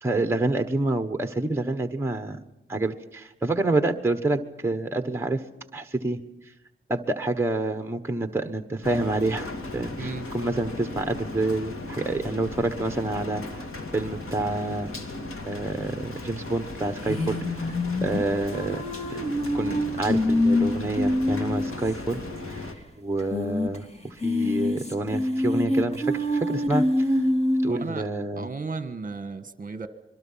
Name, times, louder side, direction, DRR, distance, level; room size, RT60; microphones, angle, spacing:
voice 1, 0.0-2.4 2.7-5.4 5.7-6.2 6.4-6.5 6.9-9.5 9.7-13.7 13.9-14.9 15.4-17.7 18.0-18.8 19.5-22.2 22.5-22.6 23.0-27.2 27.6-28.5, right 2 dB, 10° right, 7 dB, 1.3 m, -28 dB
Rain, 8.8-22.8, left 2 dB, 90° left, 2.7 m, -37 dB
sound 1, 17.0-21.9 22.2-22.3 22.5-22.6 23.2-23.8 24.1-27.7, left 1 dB, 30° left, 3.0 m, -25 dB
voice 2, 27.7-28.0 28.4-29.9, right 4 dB, 40° right, 10 dB, 1.6 m, -34 dB
26.5 x 23.0 x 5.7 m, 0.92 s
wide cardioid pair, 120°, 21 cm